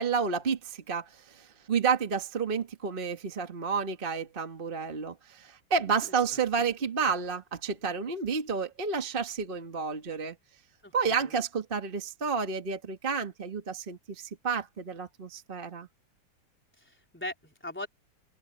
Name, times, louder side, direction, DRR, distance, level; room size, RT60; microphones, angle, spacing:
voice 1, 0.0-10.4 10.9-15.9, right 5 dB, 30° right, 1.5 m, -30 dB
voice 2, 10.8-11.3 16.8-17.9, left 1 dB, 5° left, 4.0 m, -40 dB
open air
omnidirectional pair, 2.1 m